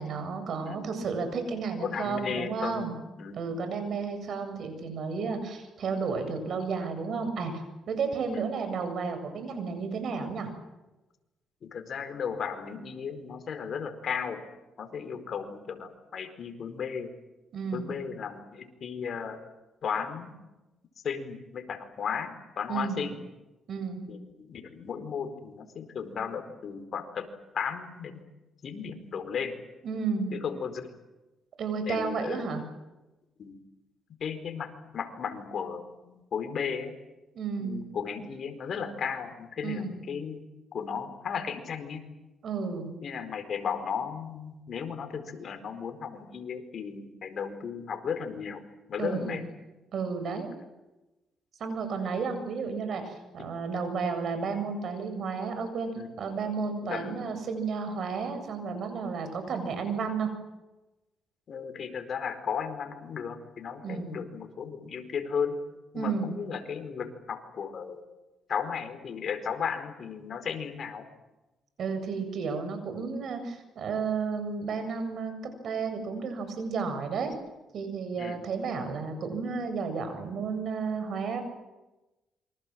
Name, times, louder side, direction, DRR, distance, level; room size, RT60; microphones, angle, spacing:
voice 1, 0.0-2.9 3.4-10.5 17.5-17.9 22.7-23.0 23.7-24.0 29.8-30.4 31.6-32.6 37.3-37.8 39.6-40.0 42.4-42.9 49.0-49.4 49.9-50.5 51.6-55.9 56.2-60.3 63.8-64.2 65.9-66.3 71.8-77.3 77.7-81.4, right 5 dB, 60° right, 8 dB, 7.7 m, -32 dB
voice 2, 1.8-3.6 8.3-8.5 11.6-14.4 14.8-17.1 17.7-19.4 19.8-20.3 21.0-23.2 24.1-27.3 27.5-28.2 28.6-29.5 30.3-30.9 31.9-32.6 33.4-33.6 34.2-36.9 37.6-40.4 40.7-42.1 43.0-48.6 48.9-49.4 53.4-53.5 55.9-56.2 56.9-57.3 61.5-65.6 65.9-68.0 68.5-71.0 78.1-78.4, left 6 dB, 55° left, 8 dB, 4.6 m, -35 dB
27.5 x 25.0 x 7.7 m, 1.0 s
cardioid pair, 90°, 0 cm